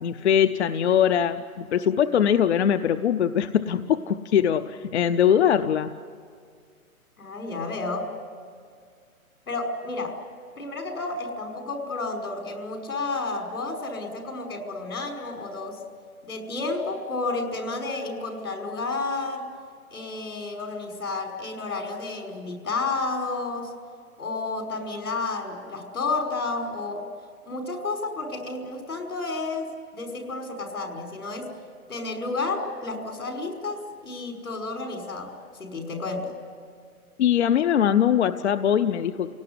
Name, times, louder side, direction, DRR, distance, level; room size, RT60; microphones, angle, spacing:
voice 1, 0.0-5.9 37.2-39.3, left 9 dB, 50° left, 9 dB, 0.8 m, -22 dB
voice 2, 7.2-8.1 9.5-10.2 10.6-15.8 16.2-19.5 19.9-23.7 24.2-27.1 27.5-31.5 31.9-36.3, left 3 dB, 85° left, 2 dB, 5.6 m, -31 dB
29.0 x 18.0 x 9.7 m, 2.1 s
hypercardioid pair, 140°, 43 cm